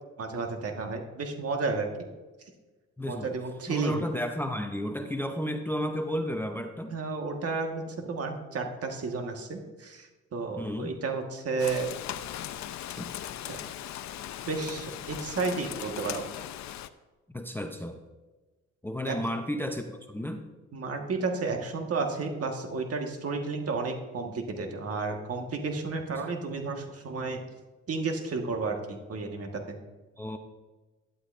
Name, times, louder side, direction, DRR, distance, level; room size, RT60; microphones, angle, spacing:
voice 1, 0.2-2.1 3.0-4.0 6.9-11.9 13.5-13.6 14.5-16.2 19.0-19.2 20.7-27.4 27.9-29.8, right 4 dB, 50° right, 3 dB, 1.5 m, -32 dB
voice 2, 3.0-3.3 3.7-6.9 10.6-10.9 13.0-13.1 17.3-18.0 18.8-20.5 30.2-30.4, equal, 5° left, 5 dB, 0.7 m, -32 dB
Rain, 11.6-16.9, left 12 dB, 65° left, 0.6 m, -38 dB
11.5 x 11.0 x 2.6 m, 1.2 s
cardioid pair, 90°, 30 cm